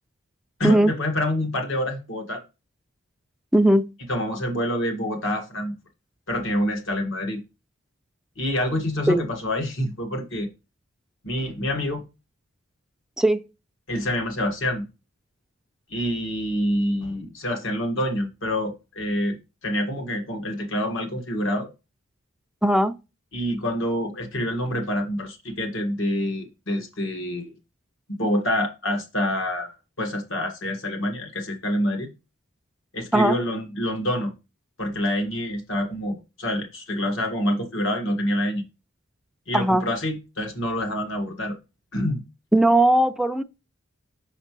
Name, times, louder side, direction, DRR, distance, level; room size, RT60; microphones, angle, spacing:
voice 1, 0.6-2.4 4.1-5.7 6.3-7.4 8.4-10.5 11.2-12.0 13.9-14.9 15.9-21.7 23.3-27.5 28.2-32.1 32.9-34.3 34.8-38.6 39.5-41.5 41.9-42.2, left 1 dB, 70° left, 1.7 m, -27 dB
voice 2, 3.5-3.9 9.1-9.2 13.2-13.4 22.6-22.9 33.1-33.4 39.5-39.8 42.5-43.4, right 1 dB, 5° right, 0.4 m, -18 dB
5.8 x 5.6 x 3.0 m
head